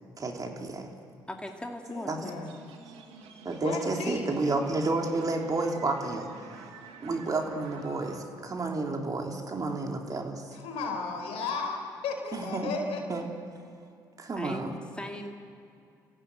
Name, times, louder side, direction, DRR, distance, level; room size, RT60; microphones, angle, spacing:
voice 1, 0.2-0.9 2.1-2.2 3.5-6.3 7.0-10.4 12.3-12.7 13.1-13.3 14.2-14.7, right 3 dB, 35° right, 2 dB, 3.5 m, -31 dB
voice 2, 1.3-2.5 14.4-15.3, left 1 dB, 10° left, 2 dB, 2.5 m, -39 dB
voice 3, 1.9-2.6 3.6-4.3 10.5-13.3, left 4 dB, 65° left, 3 dB, 4.5 m, -35 dB
sound 1, 2.4-8.2, right 5 dB, 65° right, 2.5 m, -49 dB
29.5 x 15.0 x 8.1 m, 2.4 s
hypercardioid pair, 50°, 11 cm